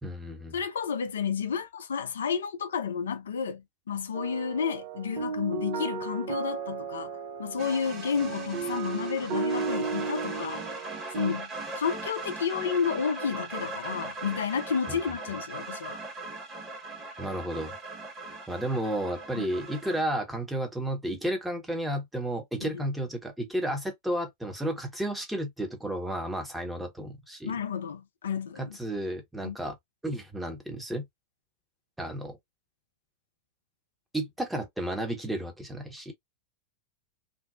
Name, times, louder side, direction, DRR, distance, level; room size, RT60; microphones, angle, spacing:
voice 1, 0.0-0.5 14.9-15.0 17.2-17.7 18.5-27.5 28.6-29.8 30.0-31.0 32.0-32.4 34.1-36.1, right 1 dB, 5° right, 0.8 m, -32 dB
voice 2, 0.5-10.6 11.1-11.5 11.8-16.0 19.4-19.5 22.6-22.8 27.4-28.8 29.4-29.6, left 6 dB, 65° left, 0.4 m, -31 dB
sound 1, 4.1-11.3, right 5 dB, 55° right, 0.5 m, -34 dB
sound 2, 7.6-20.0, right 3 dB, 20° right, 1.1 m, -39 dB
2.6 x 2.0 x 2.4 m
figure-of-eight pair, 90°, 0 cm